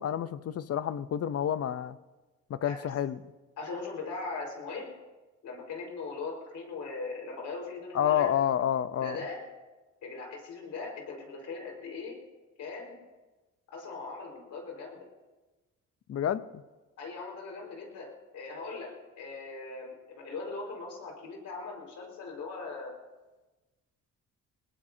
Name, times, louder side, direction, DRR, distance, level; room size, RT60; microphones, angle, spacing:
voice 1, 0.0-2.0 2.5-3.2 7.9-9.2 16.1-16.6, left 10 dB, 50° left, 14 dB, 0.7 m, -29 dB
voice 2, 3.6-4.9 5.4-8.3 9.0-9.5 10.0-12.2 12.6-13.0 13.7-15.1 17.0-23.0, left 4 dB, 75° left, 1 dB, 4.9 m, -40 dB
21.0 x 20.0 x 2.8 m, 1.2 s
cardioid pair, 90°, 30 cm